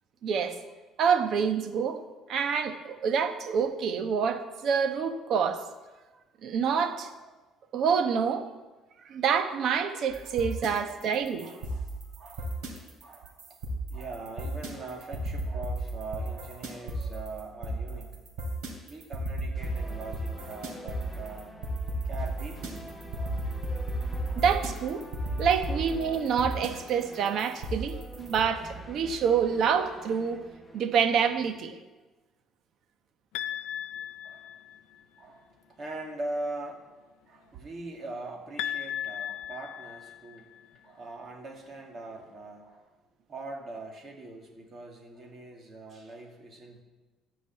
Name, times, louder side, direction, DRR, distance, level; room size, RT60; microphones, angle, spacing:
voice 1, 0.2-0.6 1.0-2.0 2.3-5.6 6.4-7.1 7.7-8.5 9.1-11.5 24.3-25.1 25.4-30.4 30.7-31.8, right 7 dB, 55° right, 8 dB, 1.1 m, -27 dB
sound 1, 10.1-28.4, right 1 dB, 85° right, 3.2 m, -34 dB
voice 2, 10.6-11.0 11.4-13.6 13.9-18.2 18.9-21.6 22.1-22.9 23.1-23.4 24.3-24.4 33.9-36.9 37.2-40.5 40.8-43.0 43.3-46.8, right 2 dB, 35° right, 1 dB, 2.2 m, -42 dB
sound 2, 19.5-31.5, equal, 5° left, 1.2 m, -46 dB
sound 3, 33.3-35.0 38.6-40.6, left 10 dB, 90° left, 0.5 m, -36 dB
14.0 x 5.5 x 8.4 m, 1.2 s
cardioid pair, 130°, 0 cm